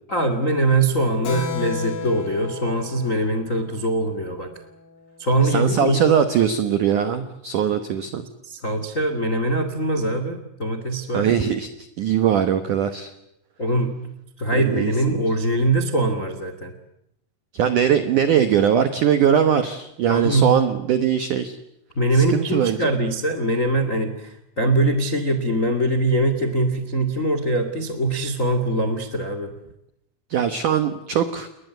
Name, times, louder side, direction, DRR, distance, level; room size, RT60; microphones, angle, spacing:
voice 1, 0.1-4.5 5.2-6.0 8.4-11.4 13.6-13.9 14.4-16.7 20.1-20.6 21.9-29.5, right 1 dB, 65° left, 9 dB, 0.7 m, -22 dB
Keyboard (musical), 1.2-5.3, left 5 dB, 85° left, 6.3 m, -34 dB
voice 2, 5.4-8.2 11.1-11.7 12.0-13.1 14.5-15.2 17.5-21.6 22.1-22.8 30.3-31.5, right 8 dB, 85° right, 9 dB, 1.7 m, -21 dB
29.5 x 21.0 x 8.0 m, 0.80 s
omnidirectional pair, 5.6 m